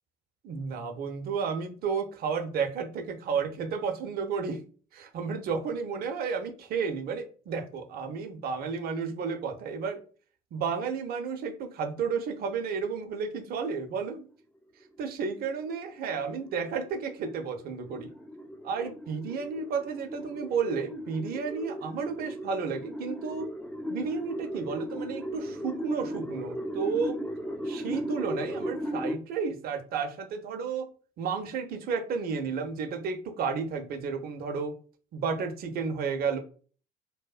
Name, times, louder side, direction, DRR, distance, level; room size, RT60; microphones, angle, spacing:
voice 1, 0.4-4.6 4.9-10.0 10.5-14.3 15.0-18.1 18.6-23.5 23.9-27.1 27.6-30.9 31.2-34.8 35.1-36.4, right 5 dB, 50° right, 6 dB, 0.5 m, -32 dB
sound 1, 14.8-29.2, equal, 5° left, 0.4 m, -37 dB
2.7 x 2.1 x 2.3 m, 0.40 s
figure-of-eight pair, 55°, 21 cm